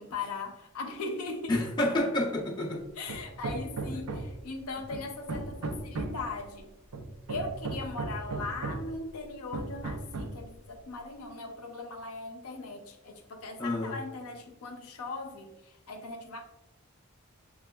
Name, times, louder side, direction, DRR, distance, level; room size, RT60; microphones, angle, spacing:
voice 1, 0.0-1.7 3.0-6.7 7.3-16.4, left 3 dB, 75° left, 4 dB, 0.5 m, -39 dB
voice 2, 1.5-2.8 13.6-14.0, left 1 dB, 20° left, -1 dB, 0.4 m, -29 dB
Hammer, 3.1-4.5 4.9-6.3 6.9-9.0 9.5-10.5, right 3 dB, 80° right, 0.5 m, -36 dB
6.5 x 2.3 x 2.2 m, 0.99 s
head